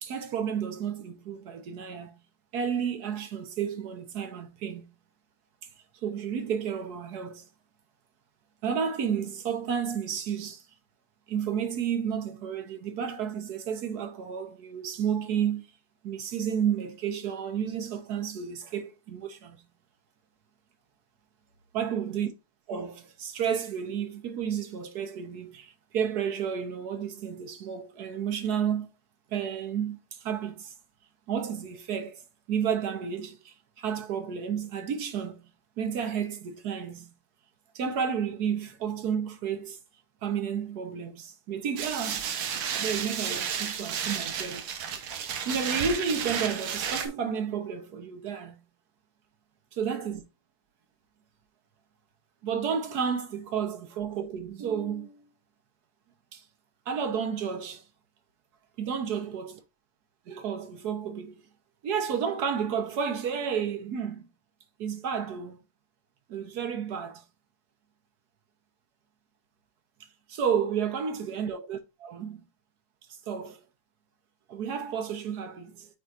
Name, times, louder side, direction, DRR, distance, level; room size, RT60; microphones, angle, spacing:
voice 1, 0.0-2.1 2.5-4.8 6.0-7.5 8.6-10.6 11.3-15.7 16.0-19.6 21.7-22.3 22.7-28.9 29.3-30.7 31.3-32.2 32.5-35.4 35.8-37.1 37.7-39.8 40.2-44.7 45.2-48.6 49.8-50.2 52.4-55.3 56.3-56.4 56.9-57.8 58.8-59.5 60.3-61.4 61.8-64.2 64.8-65.6 66.3-67.2 70.3-72.4 73.1-73.6 74.5-75.9, right 7 dB, 55° right, 1.2 m, -31 dB
sound 1, 41.8-47.1, right 8 dB, 80° right, 1.9 m, -32 dB
9.3 x 4.2 x 2.5 m
omnidirectional pair, 2.3 m